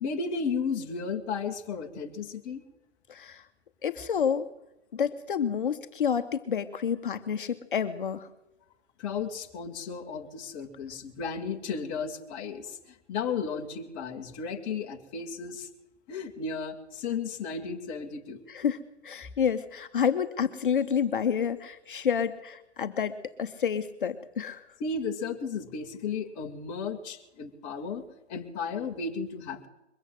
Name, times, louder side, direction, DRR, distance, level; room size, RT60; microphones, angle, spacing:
voice 1, 0.0-2.6 9.0-12.8 13.1-15.7 16.1-18.4 24.8-29.7, left 5 dB, 15° left, 2 dB, 1.0 m, -34 dB
voice 2, 3.1-3.4 3.8-4.5 4.9-8.3 18.5-18.8 19.0-24.6, left 7 dB, 50° left, 10 dB, 0.9 m, -29 dB
22.0 x 7.9 x 7.8 m, 0.91 s
hypercardioid pair, 145°, 34 cm